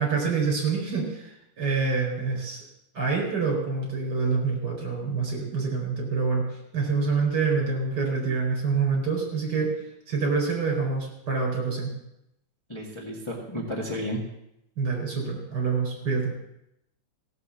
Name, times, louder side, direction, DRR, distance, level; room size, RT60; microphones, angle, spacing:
voice 1, 0.0-2.6 2.9-6.5 6.7-9.7 10.1-11.9 14.8-16.3, right 4 dB, 25° right, -1 dB, 4.6 m, -26 dB
voice 2, 12.7-14.2, equal, 30° left, -3 dB, 0.5 m, -32 dB
16.5 x 7.4 x 7.4 m, 0.83 s
omnidirectional pair, 4.3 m